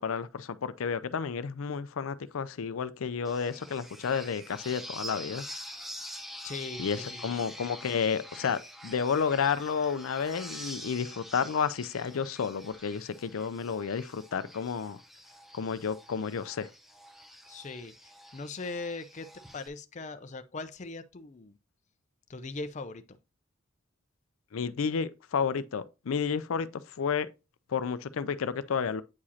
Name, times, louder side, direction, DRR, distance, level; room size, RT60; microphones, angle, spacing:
voice 1, 0.0-5.4 6.8-15.0 15.5-16.7 24.5-26.7 27.0-27.3 27.7-29.0, left 6 dB, 90° left, 0.5 m, -31 dB
sound 1, 3.2-19.7, equal, ahead, 0.7 m, -46 dB
voice 2, 6.4-7.4 17.5-21.5 22.3-23.2, left 3 dB, 35° left, 0.5 m, -40 dB
8.3 x 4.9 x 2.8 m
head